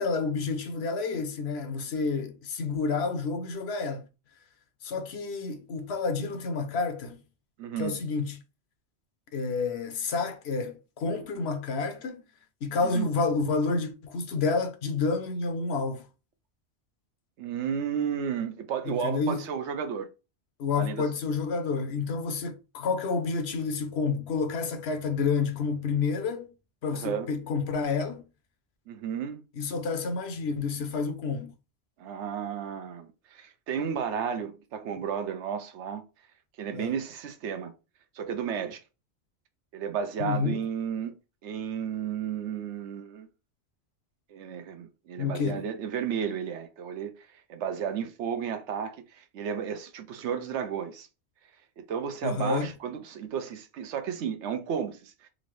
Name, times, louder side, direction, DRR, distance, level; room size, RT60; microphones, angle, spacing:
voice 1, 0.0-4.1 4.8-7.2 7.8-8.4 9.3-12.2 12.6-16.1 18.8-19.4 20.6-26.5 26.8-28.2 29.6-31.5 36.7-36.9 40.2-40.6 45.2-45.6 52.2-52.7, left 4 dB, 70° left, 0.9 m, -29 dB
voice 2, 7.6-8.0 12.8-13.1 17.4-20.1 20.7-21.0 26.9-27.3 28.9-29.4 32.0-36.0 36.6-37.7 38.2-38.8 39.7-41.1 41.4-43.3 44.3-47.1 47.5-51.1 51.8-55.3, right 7 dB, 85° right, 0.9 m, -33 dB
3.9 x 2.6 x 3.1 m
omnidirectional pair, 1.2 m